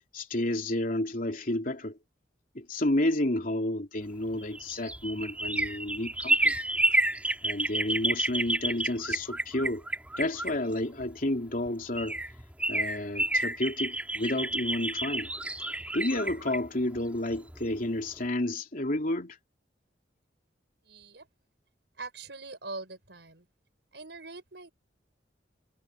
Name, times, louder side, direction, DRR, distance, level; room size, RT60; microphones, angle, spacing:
voice 1, 0.1-2.0 2.5-6.5 7.4-9.8 10.2-12.2 12.7-15.3 15.9-19.4, left 1 dB, 50° left, 3.2 m, -31 dB
sound 1, 4.3-11.1 11.7-11.8 12.0-17.7 18.1-18.2, right 1 dB, 10° right, 3.0 m, -30 dB
voice 2, 20.8-21.3 22.0-23.5 23.9-24.7, right 3 dB, 75° right, 5.2 m, -42 dB
head